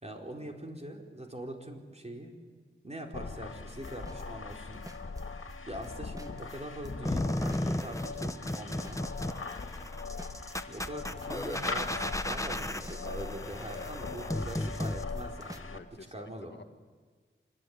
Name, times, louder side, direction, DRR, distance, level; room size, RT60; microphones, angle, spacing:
voice 1, 0.0-2.3 2.8-4.8 5.7-9.0 10.7-15.8 16.1-16.6, right 1 dB, 30° right, 1 dB, 4.3 m, -43 dB
sound 1, 3.1-15.8, left 4 dB, 80° left, 2.1 m, -41 dB
sound 2, 3.7-5.9 6.2-15.6, right 1 dB, 15° right, 1.7 m, -51 dB
sound 3, 7.0-15.0, left 1 dB, 15° left, 1.2 m, -35 dB
voice 2, 9.3-9.7 13.7-13.9 15.7-16.6, left 4 dB, 60° left, 5 dB, 1.6 m, -51 dB
26.0 x 21.0 x 9.6 m, 1.5 s
wide cardioid pair, 60°, 21 cm